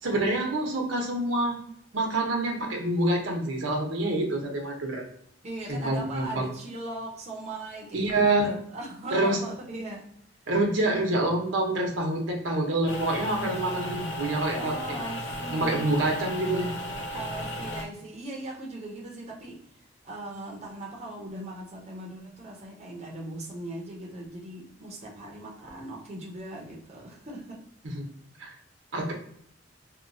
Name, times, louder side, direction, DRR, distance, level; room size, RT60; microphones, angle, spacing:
voice 1, 0.0-1.6 1.9-5.0 5.7-6.5 7.9-8.5 9.1-9.4 10.5-14.7 15.5-16.7 27.8-28.1 28.4-28.6 28.9-29.1, right 2 dB, 90° right, 1 dB, 0.8 m, -26 dB
voice 2, 5.4-10.1 14.5-16.2 17.1-19.6 20.0-27.6, right 2 dB, 35° right, -2 dB, 0.6 m, -39 dB
sound 1, 12.9-17.8, equal, 70° left, 0.5 m, -35 dB
2.8 x 2.2 x 2.6 m, 0.68 s
head